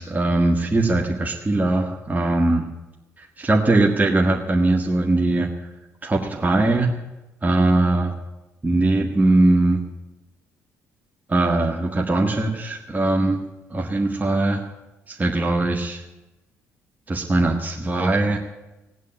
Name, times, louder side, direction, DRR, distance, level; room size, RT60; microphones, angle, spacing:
voice 1, 0.0-2.7 3.4-5.5 6.0-6.9 7.4-8.2 8.6-9.8 11.3-13.4 13.7-14.6 15.1-16.0 17.1-18.4, right 2 dB, 20° right, 0 dB, 1.8 m, -20 dB
16.5 x 9.5 x 8.9 m, 1.0 s
figure-of-eight pair, 45°, 8 cm